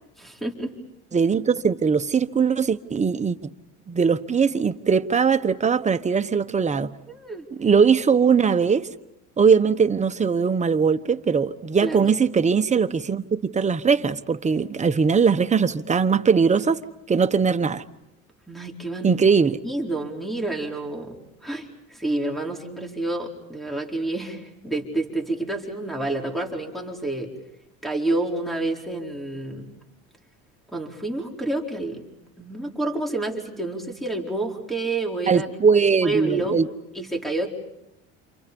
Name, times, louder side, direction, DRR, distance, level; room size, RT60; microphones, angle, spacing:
voice 1, 0.2-0.7 7.1-7.4 11.8-12.1 18.5-19.2 19.6-21.1 21.4-27.3 27.8-29.7 30.7-32.0 32.4-35.5 36.0-36.6 36.9-37.5, right 2 dB, ahead, 4.4 m, -29 dB
voice 2, 1.1-3.5 3.9-6.9 7.6-8.9 9.4-16.8 17.1-17.8 19.0-19.6 35.3-36.7, right 6 dB, 20° right, 1.1 m, -20 dB
29.5 x 28.0 x 5.4 m
cardioid pair, 115°, 31 cm